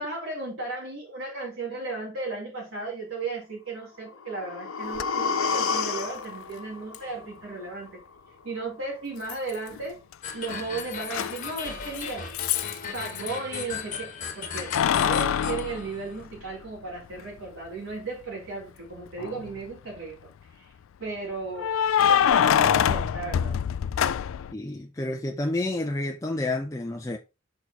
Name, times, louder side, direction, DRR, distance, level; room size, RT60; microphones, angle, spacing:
voice 1, 0.0-8.0 8.4-10.0 10.3-12.3 12.8-20.6 21.0-21.7 22.1-23.6, right 3 dB, 75° right, 3.4 m, -35 dB
sound 1, 4.1-8.1 8.4-8.5, left 5 dB, 90° left, 1.0 m, -31 dB
Keys jangling, 5.0-5.1 6.9-7.0 9.3-9.8 10.1-13.3 14.6-16.7 17.2-17.3 19.1-19.6 21.6-24.5, left 9 dB, 75° left, 0.3 m, -25 dB
sound 2, 10.2-16.2, left 5 dB, 40° left, 1.3 m, -37 dB
voice 2, 24.5-27.2, left 2 dB, 15° left, 0.5 m, -29 dB
5.9 x 4.6 x 4.1 m
head